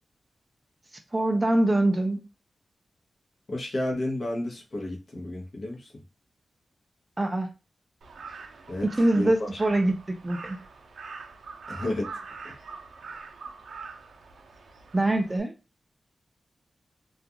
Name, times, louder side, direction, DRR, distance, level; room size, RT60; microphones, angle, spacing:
voice 1, 1.1-2.2 7.2-7.5 9.0-10.6 14.9-15.5, right 1 dB, 20° right, 0.3 m, -24 dB
voice 2, 3.5-6.0 8.7-9.6 11.7-12.1 12.4-12.6, left 1 dB, 40° left, 0.8 m, -32 dB
Crow, 8.0-15.4, right 4 dB, 85° right, 0.5 m, -43 dB
2.3 x 2.2 x 2.8 m
wide cardioid pair, 160°, 0 cm